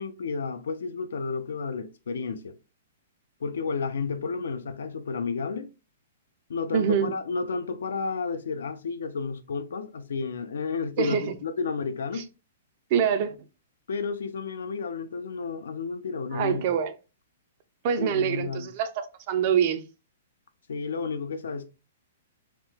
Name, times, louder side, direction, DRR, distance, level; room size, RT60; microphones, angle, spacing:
voice 1, 0.0-2.5 3.4-5.7 6.5-12.3 13.9-16.8 18.0-18.7 20.7-21.7, left 5 dB, 85° left, 0.5 m, -31 dB
voice 2, 6.7-7.1 11.0-11.3 12.9-13.3 16.3-16.9 17.8-19.8, right 8 dB, 40° right, 0.4 m, -25 dB
2.9 x 2.2 x 3.2 m
hypercardioid pair, 160°, 0 cm